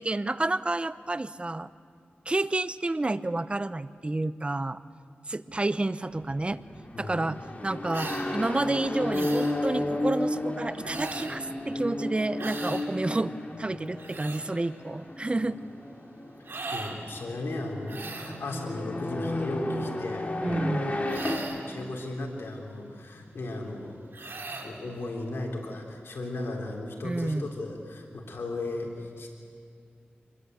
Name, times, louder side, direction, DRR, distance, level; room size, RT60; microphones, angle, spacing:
voice 1, 0.0-1.7 2.3-4.8 5.3-6.6 7.0-15.6 20.4-21.0 27.0-27.5, right 2 dB, 30° right, 14 dB, 0.7 m, -30 dB
sound 1, 6.1-21.4, left 1 dB, 40° left, 3.1 m, -33 dB
voice 2, 6.9-7.3 16.7-20.3 21.7-29.3, left 2 dB, 80° left, 0 dB, 3.9 m, -36 dB
sound 2, 7.9-8.3 9.1-9.6 10.8-11.4 12.4-12.9 13.8-14.4 16.4-17.0 17.9-18.4 21.1-21.7 24.1-24.7, right 3 dB, 65° right, 2.7 m, -38 dB
25.0 x 21.5 x 8.2 m, 2.3 s
wide cardioid pair, 65°, 4 cm